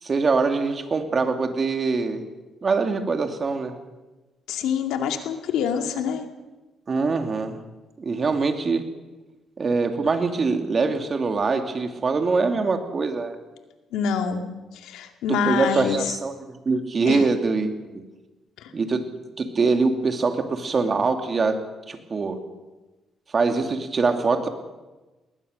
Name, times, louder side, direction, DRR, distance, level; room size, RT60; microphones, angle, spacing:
voice 1, 0.0-2.2 2.6-3.7 6.9-7.6 8.0-8.8 9.6-13.3 15.3-18.0 18.7-19.0 19.4-21.6 21.9-22.4 23.3-24.5, right 4 dB, 40° right, 6 dB, 2.7 m, -23 dB
voice 2, 4.5-6.2 13.9-14.4 14.7-16.1 17.1-17.2 18.6-18.7, left 7 dB, 90° left, 5 dB, 2.3 m, -26 dB
21.0 x 19.0 x 6.8 m, 1.1 s
cardioid pair, 90°, 0 cm